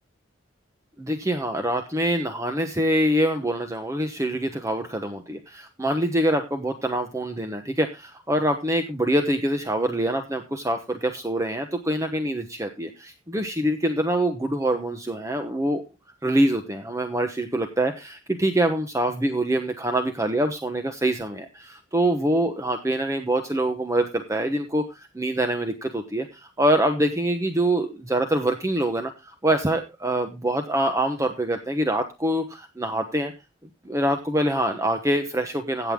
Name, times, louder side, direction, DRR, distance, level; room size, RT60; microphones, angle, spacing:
voice 1, 1.0-15.8 16.2-33.3 33.8-35.9, right 1 dB, 15° right, 6 dB, 1.1 m, -25 dB
15.5 x 7.9 x 3.7 m, 0.26 s
head